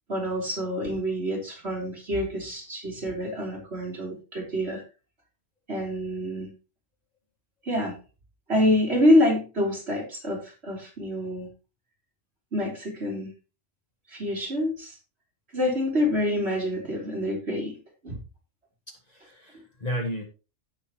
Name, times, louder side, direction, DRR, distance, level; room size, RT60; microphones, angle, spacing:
voice 1, 0.1-4.8 5.7-6.5 7.7-7.9 8.5-11.5 12.5-13.3 14.1-14.9 15.5-17.8 18.0-18.2, left 1 dB, 60° right, 4.0 m, -26 dB
voice 2, 18.9-20.2, equal, 35° left, 1.7 m, -34 dB
16.5 x 6.5 x 3.0 m
omnidirectional pair, 1.3 m